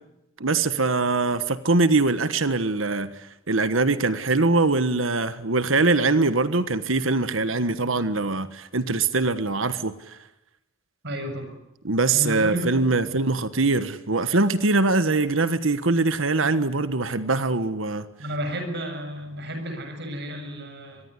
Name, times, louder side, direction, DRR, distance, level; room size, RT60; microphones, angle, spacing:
voice 1, 0.4-10.2 11.8-18.1, right 3 dB, 80° right, 1.4 m, -23 dB
voice 2, 11.0-11.5 12.1-12.7 13.0-13.2 18.2-21.0, equal, 60° right, 7.2 m, -32 dB
24.5 x 22.0 x 9.8 m
head